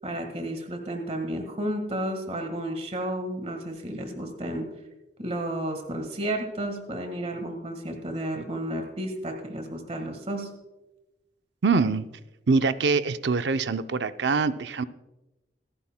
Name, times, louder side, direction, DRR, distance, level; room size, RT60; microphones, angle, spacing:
voice 1, 0.0-4.7 5.2-10.5, right 1 dB, 35° right, 5 dB, 1.6 m, -32 dB
voice 2, 11.6-12.1 12.5-14.8, right 4 dB, 70° right, 11 dB, 0.6 m, -24 dB
26.5 x 9.9 x 2.2 m, 1.0 s
head